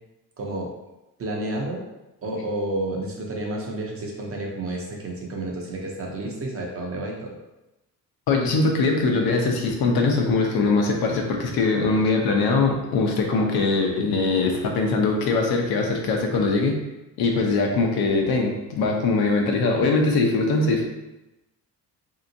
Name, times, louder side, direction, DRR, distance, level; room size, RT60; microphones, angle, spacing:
voice 1, 0.4-0.7 1.2-1.8 2.2-7.4, right 1 dB, 35° right, -1 dB, 0.6 m, -30 dB
voice 2, 8.3-16.8 17.2-20.8, left 3 dB, 70° left, 1 dB, 0.7 m, -22 dB
3.4 x 2.8 x 2.6 m, 0.97 s
cardioid pair, 145°, 38 cm